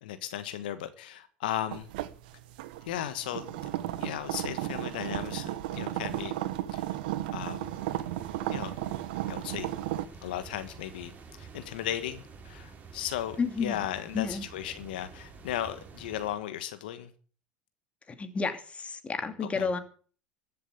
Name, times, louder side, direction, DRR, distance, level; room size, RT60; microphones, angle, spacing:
voice 1, 0.0-1.9 2.8-6.3 6.7-6.8 7.3-7.7 8.5-8.7 9.3-9.7 10.2-11.1 11.4-17.1 19.4-19.7, left 11 dB, 80° left, 1.4 m, -36 dB
sound 1, 1.7-10.1, right 14 dB, 75° right, 1.3 m, -34 dB
sound 2, 7.6-16.3, right 4 dB, 30° right, 6.3 m, -49 dB
voice 2, 13.4-13.8 14.1-14.4 18.2-19.8, left 5 dB, 25° left, 2.4 m, -31 dB
14.0 x 7.6 x 8.4 m
hypercardioid pair, 85°, 5 cm